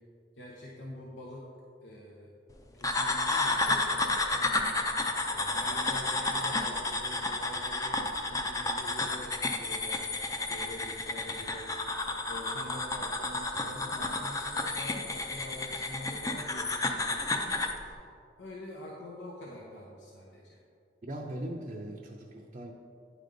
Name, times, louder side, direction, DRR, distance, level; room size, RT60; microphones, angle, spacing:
voice 1, 0.4-1.4 1.8-2.3 2.7-4.9 5.3-8.0 8.3-10.2 10.5-12.0 12.3-18.1 18.4-20.6, left 1 dB, 90° left, -3 dB, 0.9 m, -45 dB
sound 1, 2.8-17.8, left 2 dB, 20° left, 0.5 m, -31 dB
voice 2, 21.0-22.7, right 1 dB, 40° right, 1 dB, 0.5 m, -39 dB
9.8 x 5.2 x 3.8 m, 2.4 s
head